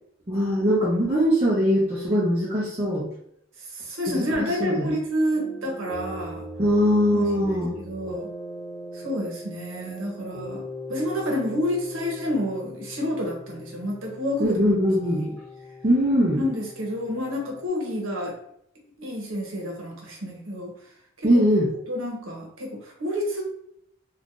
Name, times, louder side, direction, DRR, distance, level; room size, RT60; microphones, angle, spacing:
voice 1, 0.3-3.1 4.1-4.9 6.6-7.7 14.4-15.3 15.8-16.4 21.2-21.7, equal, 25° right, -7 dB, 0.6 m, -21 dB
voice 2, 3.6-6.5 7.1-8.3 8.9-10.6 10.9-14.6 15.0-15.4 16.4-18.4 19.0-20.7 21.2-21.3 21.9-23.4, left 1 dB, 80° right, 0 dB, 1.0 m, -29 dB
sound 1, 5.3-17.7, equal, 20° left, 0.6 m, -40 dB
2.6 x 2.4 x 3.7 m, 0.72 s
head